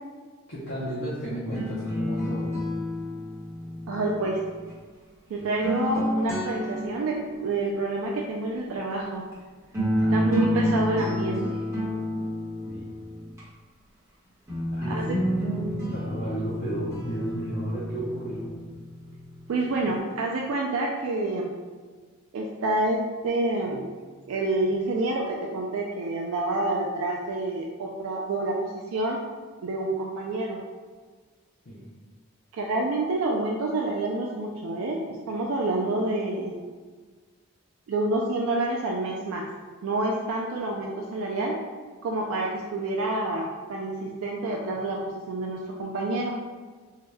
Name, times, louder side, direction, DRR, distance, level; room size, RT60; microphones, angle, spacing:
voice 1, 0.5-2.6 9.9-10.7 12.7-12.9 14.7-18.5 31.7-31.9, right 1 dB, 60° left, -9 dB, 0.6 m, -33 dB
sound 1, 1.4-4.7 5.4-7.5 9.3-9.4 9.7-13.4 14.5-19.5, equal, 15° right, 1.0 m, -29 dB
voice 2, 3.9-4.4 5.3-9.3 10.1-11.6 14.9-15.1 19.5-21.5 22.3-23.9 24.3-29.2 29.6-30.6 32.5-36.6 37.9-39.5 39.8-41.5 42.0-45.0 45.3-46.4, right 2 dB, 80° right, -1 dB, 0.3 m, -28 dB
2.7 x 2.2 x 3.2 m, 1.4 s
head